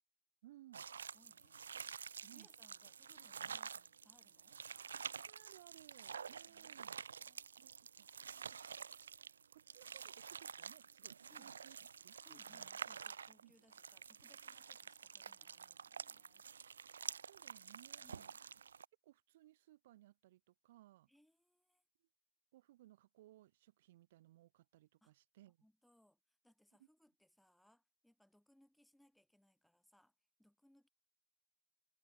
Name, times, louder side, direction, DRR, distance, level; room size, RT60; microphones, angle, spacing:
voice 1, 0.4-0.9 2.3-2.5 5.3-6.9 7.5-8.1 8.3-8.6 9.5-11.8 12.0-12.7 13.4-13.5 17.2-18.0 19.0-21.1 22.5-25.6, right 15 dB, 40° right, 6.4 m, -63 dB
sound 1, 0.7-18.8, right 7 dB, 70° right, 0.4 m, -49 dB
voice 2, 1.1-1.6 2.2-4.6 6.5-6.9 7.2-7.5 11.3-11.5 12.2-16.5 18.0-18.4 21.1-21.8 25.0-25.1 25.6-30.9, left 1 dB, ahead, 7.8 m, -71 dB
hypercardioid pair, 155°, 0 cm